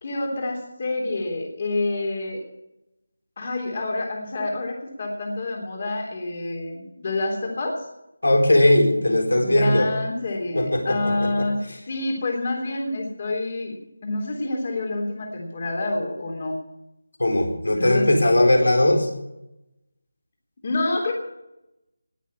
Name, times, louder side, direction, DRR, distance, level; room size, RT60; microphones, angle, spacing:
voice 1, 0.0-2.4 3.4-7.7 9.4-11.6 11.9-13.7 14.0-16.5 17.7-18.4 20.6-21.1, left 2 dB, 35° left, 1 dB, 3.4 m, -27 dB
voice 2, 8.2-10.0 10.5-11.5 17.2-19.1, left 1 dB, 85° left, 3 dB, 4.2 m, -19 dB
20.0 x 6.8 x 8.6 m, 0.88 s
figure-of-eight pair, 170°, 0 cm